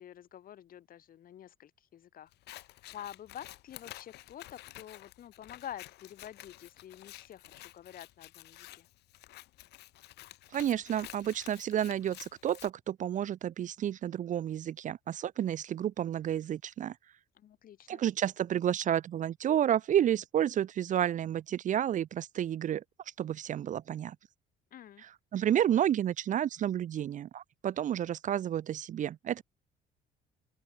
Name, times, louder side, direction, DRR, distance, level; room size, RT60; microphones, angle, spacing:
voice 1, 0.0-2.3 2.9-8.9 17.3-18.0 24.7-25.0, left 11 dB, 55° left, 4.6 m, -48 dB
Scissors, 2.3-12.7, left 16 dB, 80° left, 7.6 m, -51 dB
voice 2, 10.5-16.9 17.9-22.8 23.2-24.2 25.3-29.4, right 10 dB, 50° right, 0.7 m, -30 dB
open air
cardioid pair, 110°, 17 cm